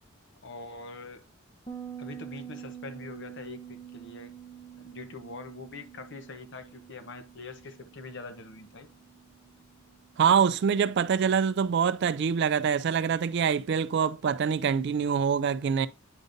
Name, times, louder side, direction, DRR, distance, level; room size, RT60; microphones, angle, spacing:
voice 1, 0.4-1.2 2.0-4.3 4.8-8.9, left 3 dB, 60° left, 0.9 m, -43 dB
Bass guitar, 1.7-11.0, right 9 dB, 25° left, 0.9 m, -47 dB
voice 2, 10.2-15.9, right 7 dB, 55° right, 0.3 m, -25 dB
9.1 x 5.1 x 2.6 m
head